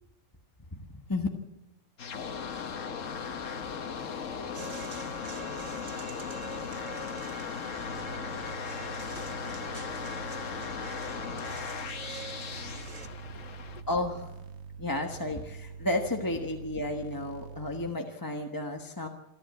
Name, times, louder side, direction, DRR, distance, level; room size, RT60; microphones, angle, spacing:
voice 1, 0.7-1.3 13.9-14.3 14.8-19.1, left 2 dB, 15° left, 1.3 m, -32 dB
sound 1, 2.0-13.8, left 6 dB, 80° left, 1.5 m, -37 dB
sound 2, 4.5-13.1, right 5 dB, 80° right, 1.7 m, -46 dB
sound 3, 7.8-17.9, right 6 dB, 60° right, 1.5 m, -45 dB
voice 2, 8.4-9.3 9.9-13.9 14.7-15.3, left 2 dB, 40° left, 3.2 m, -54 dB
28.0 x 11.0 x 9.4 m
omnidirectional pair, 1.3 m